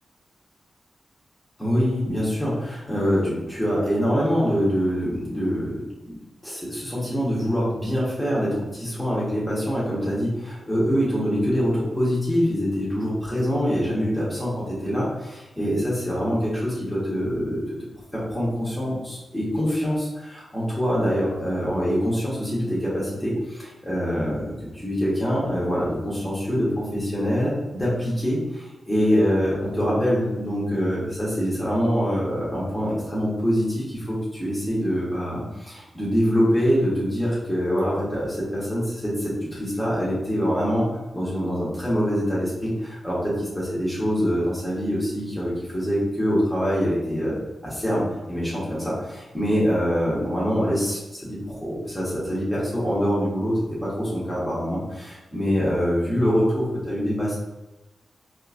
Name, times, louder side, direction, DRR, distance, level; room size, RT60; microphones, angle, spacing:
voice 1, 1.6-6.2 6.4-17.8 18.1-57.4, equal, 5° left, -7 dB, 1.1 m, -25 dB
3.7 x 2.5 x 2.5 m, 1.0 s
cardioid pair, 80°, 0 cm